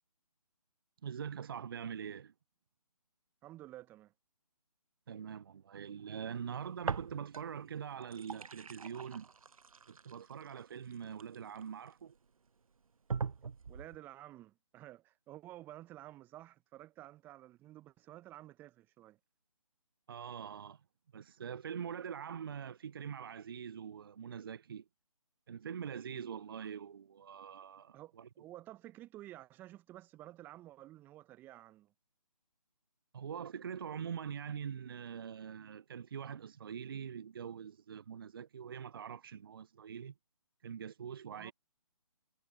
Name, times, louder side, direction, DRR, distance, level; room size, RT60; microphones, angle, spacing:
voice 1, 1.0-2.3 5.1-9.3 9.9-12.2 20.1-20.8 21.1-24.9 25.5-28.3 33.1-40.1 40.6-41.5, right 7 dB, 40° right, 0.8 m, -43 dB
voice 2, 3.4-4.1 13.7-19.2 26.1-26.3 27.9-31.9 41.3-41.5, right 15 dB, 10° right, 1.0 m, -52 dB
sound 1, 6.8-7.6 7.9-11.9 12.5-12.6 13.1-14.0, right 5 dB, 65° right, 0.6 m, -42 dB
figure-of-eight pair, 145°, 19 cm